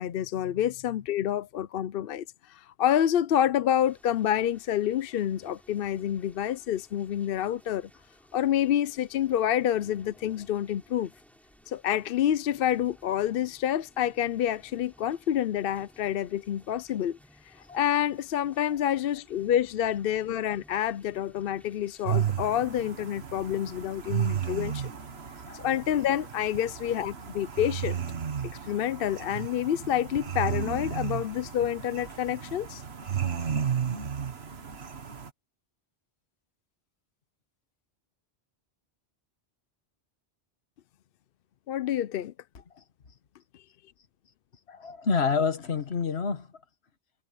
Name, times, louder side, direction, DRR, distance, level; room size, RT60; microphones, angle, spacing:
voice 1, 0.0-2.2 2.5-7.9 8.3-11.1 11.7-17.2 17.7-24.9 25.5-28.0 28.6-32.8 41.7-42.3, left 10 dB, 65° left, 0.7 m, -28 dB
sound 1, 3.8-22.2, equal, ahead, 5.2 m, -58 dB
sound 2, 22.1-35.3, right 8 dB, 80° right, 1.7 m, -33 dB
voice 2, 25.5-25.8 42.7-42.8 44.7-46.5, left 5 dB, 80° left, 1.7 m, -29 dB
omnidirectional pair, 1.1 m